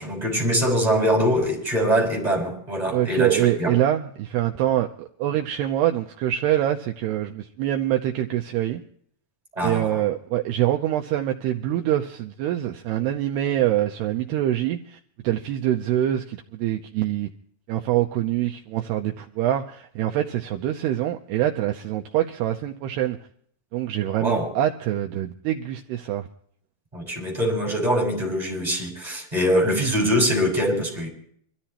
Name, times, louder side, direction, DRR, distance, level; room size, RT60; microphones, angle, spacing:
voice 1, 0.0-3.7 9.5-9.9 24.2-24.5 26.9-31.1, equal, 10° right, 5.8 m, -23 dB
voice 2, 2.9-8.8 9.6-15.0 15.2-17.3 17.7-23.2 23.7-26.3, right 12 dB, 85° right, 2.3 m, -25 dB
24.5 x 14.0 x 2.9 m
omnidirectional pair, 5.6 m